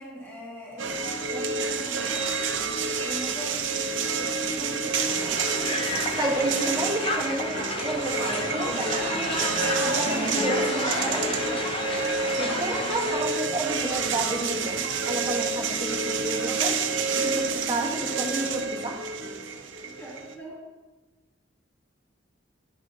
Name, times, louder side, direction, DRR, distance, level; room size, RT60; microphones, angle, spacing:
voice 1, 0.0-2.3 3.0-5.4 8.5-9.3 9.9-11.6 20.0-20.6, equal, 15° left, -6 dB, 2.2 m, -39 dB
sound 1, 0.8-20.4, right 4 dB, 80° right, 0.7 m, -28 dB
Crowd, 4.9-13.3, left 2 dB, 30° left, 0.7 m, -32 dB
voice 2, 6.2-9.1 9.7-11.3 12.4-14.8 15.0-16.8 17.1-19.1, right 2 dB, 20° right, -2 dB, 1.2 m, -30 dB
10.5 x 6.1 x 2.8 m, 1.2 s
head